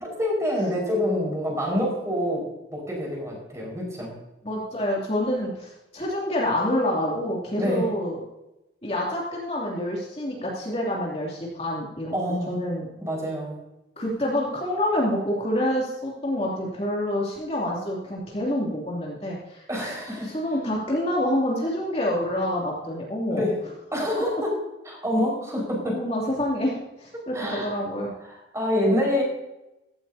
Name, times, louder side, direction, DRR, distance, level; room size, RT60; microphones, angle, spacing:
voice 1, 0.0-4.1 7.6-7.9 12.1-12.6 13.0-13.5 19.7-20.4 23.3-23.6 23.9-24.5 24.9-25.9 27.3-27.7 28.2-29.2, left 1 dB, 15° right, -2 dB, 5.1 m, -26 dB
voice 2, 4.4-8.2 8.8-12.1 12.5-12.9 14.0-19.6 20.2-23.4 25.8-28.1, left 1 dB, 30° left, -4 dB, 2.7 m, -27 dB
15.5 x 14.5 x 2.8 m, 0.93 s
head